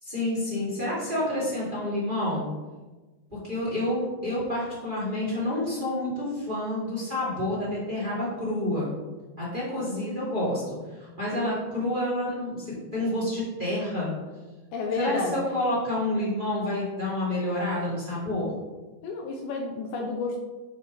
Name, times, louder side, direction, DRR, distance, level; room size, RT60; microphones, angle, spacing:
voice 1, 0.0-2.5 3.4-8.9 9.4-14.1 15.0-18.5, left 1 dB, 15° right, -7 dB, 2.4 m, -29 dB
voice 2, 14.7-15.4 19.0-20.4, left 3 dB, 75° left, 2 dB, 2.4 m, -30 dB
8.4 x 4.8 x 5.1 m, 1.2 s
omnidirectional pair, 4.3 m